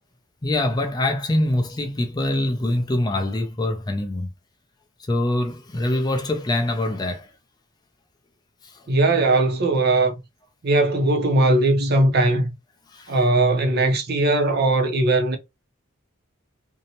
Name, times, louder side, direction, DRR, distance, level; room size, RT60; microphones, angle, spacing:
voice 1, 0.4-4.3 5.1-7.3 8.6-8.9 12.9-13.2, left 1 dB, 20° left, 0.4 m, -24 dB
voice 2, 8.9-10.1 10.6-12.5 13.1-15.4, right 2 dB, 45° right, 0.6 m, -19 dB
2.7 x 2.1 x 2.8 m
head